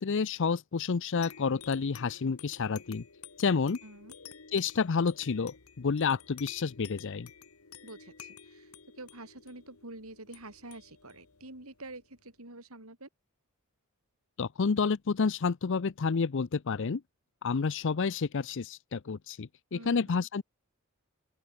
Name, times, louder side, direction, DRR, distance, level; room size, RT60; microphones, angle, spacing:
voice 1, 0.0-3.0 3.4-3.8 4.5-7.3 14.4-17.0 17.4-20.4, left 5 dB, 60° left, 0.6 m, -29 dB
sound 1, 1.2-12.3, left 7 dB, 85° left, 1.8 m, -52 dB
voice 2, 3.8-4.1 7.8-13.1 19.7-20.2, right 2 dB, 75° right, 6.5 m, -47 dB
open air
head